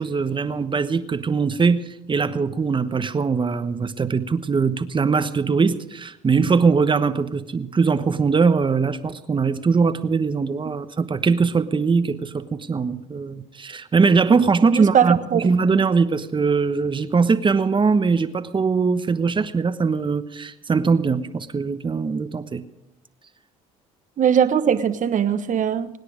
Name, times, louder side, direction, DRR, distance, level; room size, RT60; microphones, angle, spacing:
voice 1, 0.0-22.6, right 5 dB, 30° right, 11 dB, 1.1 m, -21 dB
voice 2, 14.7-15.5 24.2-25.9, right 8 dB, 50° right, 11 dB, 1.3 m, -20 dB
24.5 x 9.8 x 5.0 m, 0.89 s
hypercardioid pair, 70°, 17 cm